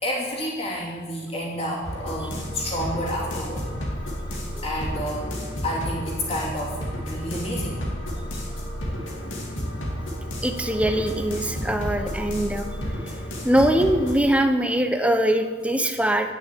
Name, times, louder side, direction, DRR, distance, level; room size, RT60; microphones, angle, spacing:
voice 1, 0.0-3.7 4.6-5.4 5.6-7.8 9.2-9.6 11.6-11.8, equal, 30° left, -4 dB, 3.2 m, -30 dB
sound 1, 1.8-14.1, equal, 85° left, 2.5 m, -31 dB
voice 2, 10.4-12.7 13.4-16.3, right 1 dB, 5° right, 6 dB, 0.8 m, -22 dB
10.5 x 6.5 x 8.4 m, 1.4 s
head